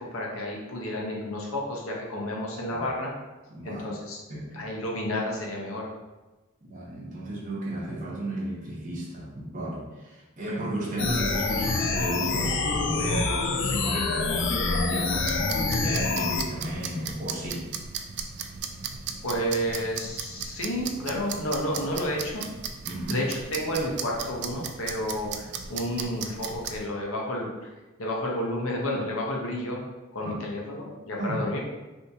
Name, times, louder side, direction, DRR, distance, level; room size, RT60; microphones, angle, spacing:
voice 1, 0.0-3.1 3.6-4.2 4.5-5.9 19.2-22.4 23.1-27.5 28.0-29.8 30.1-31.6, left 1 dB, 85° left, -2 dB, 0.8 m, -31 dB
voice 2, 3.5-3.8 4.3-4.6 6.6-17.7 22.8-23.2 30.2-30.3 31.2-31.6, right 1 dB, 40° right, -4 dB, 0.8 m, -33 dB
sound 1, 11.0-16.4, left 3 dB, 60° left, 0.4 m, -26 dB
sound 2, 15.1-26.9, right 6 dB, 55° right, 0.3 m, -37 dB
3.4 x 2.7 x 2.7 m, 1.1 s
head